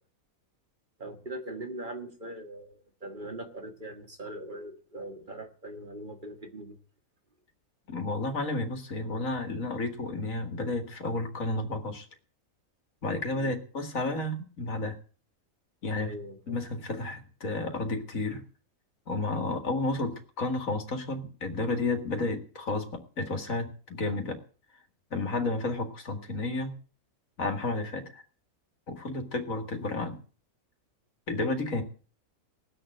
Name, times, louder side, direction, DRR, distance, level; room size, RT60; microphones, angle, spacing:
voice 1, 1.0-6.8 13.3-13.6 16.0-16.6, right 1 dB, 35° right, 5 dB, 1.9 m, -41 dB
voice 2, 7.9-12.1 13.0-15.0 15.8-16.1 16.5-18.4 19.1-24.4 25.1-26.7 27.4-28.2 28.9-30.2 31.3-31.8, left 2 dB, 70° left, 6 dB, 2.5 m, -31 dB
18.5 x 6.9 x 7.7 m, 0.41 s
omnidirectional pair, 1.5 m